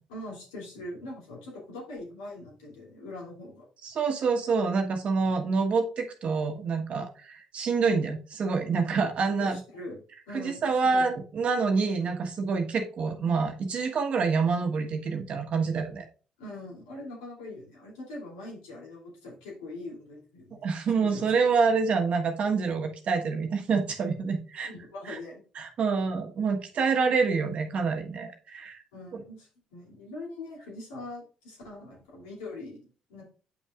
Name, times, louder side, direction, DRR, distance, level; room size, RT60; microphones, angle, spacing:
voice 1, 0.1-3.7 9.4-10.0 10.3-11.1 16.4-21.4 24.7-25.4 28.9-33.2, left 2 dB, 85° left, -4 dB, 2.7 m, -42 dB
voice 2, 3.8-9.6 10.3-16.0 20.6-24.7 25.1-25.2 25.6-28.8 29.1-29.2, right 5 dB, 55° right, 4 dB, 1.3 m, -27 dB
8.6 x 5.6 x 2.4 m, 0.38 s
hypercardioid pair, 55°, 2 cm